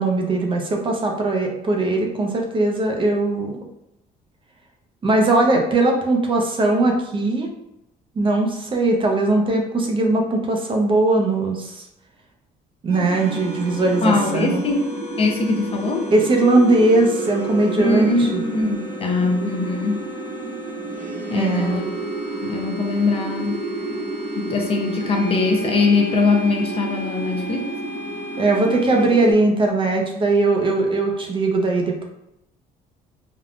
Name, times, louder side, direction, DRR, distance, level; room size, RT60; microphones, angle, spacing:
voice 1, 0.0-3.6 5.0-7.5 8.2-11.8 12.8-14.6 16.1-18.4 21.3-21.8 28.4-32.0, right 2 dB, 30° right, 1 dB, 0.6 m, -19 dB
sound 1, 12.9-29.3, right 2 dB, 70° right, 1.0 m, -30 dB
voice 2, 14.0-14.8 15.2-16.0 17.8-20.0 21.3-21.9 22.4-23.6 23.9-24.0 24.3-27.7, left 3 dB, 35° left, 1 dB, 0.5 m, -21 dB
3.5 x 2.2 x 2.4 m, 0.84 s
cardioid pair, 110°, 17 cm